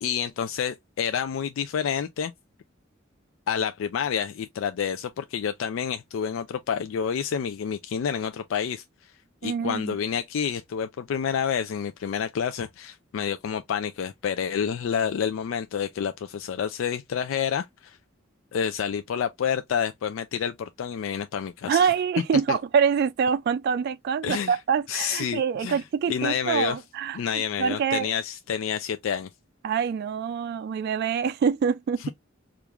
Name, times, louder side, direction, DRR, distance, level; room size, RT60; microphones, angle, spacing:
voice 1, 0.0-2.3 3.5-8.8 9.4-18.0 18.5-21.9 22.5-22.6 24.2-24.6 24.9-25.8 26.1-26.8 27.1-29.3 32.0-32.1, left 7 dB, 70° left, 0.3 m, -29 dB
voice 2, 9.4-10.0 21.7-28.1 29.6-32.1, right 7 dB, 55° right, 0.3 m, -25 dB
3.5 x 2.4 x 2.9 m
head